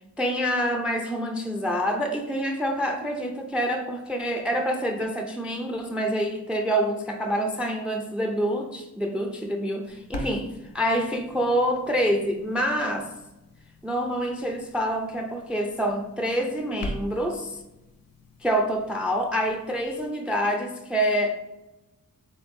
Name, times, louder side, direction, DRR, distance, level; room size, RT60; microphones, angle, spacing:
voice 1, 0.2-10.5 10.7-13.1 13.8-17.6 18.4-21.4, equal, 5° right, 4 dB, 0.4 m, -26 dB
sound 1, 9.8-20.1, left 1 dB, 70° left, 0.8 m, -43 dB
4.4 x 3.5 x 2.6 m, 0.98 s
cardioid pair, 55°, 36 cm